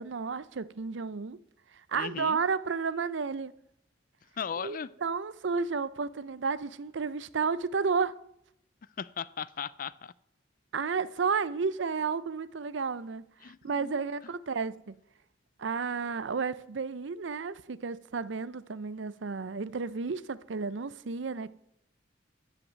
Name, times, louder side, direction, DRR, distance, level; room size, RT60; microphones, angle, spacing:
voice 1, 0.0-1.4 1.9-3.5 4.6-8.1 10.7-14.9 15.6-21.5, right 5 dB, 70° right, 0.6 m, -32 dB
voice 2, 1.9-2.4 4.4-4.9 9.0-10.1 13.4-14.0, left 7 dB, 45° left, 0.4 m, -37 dB
13.5 x 6.0 x 9.3 m
head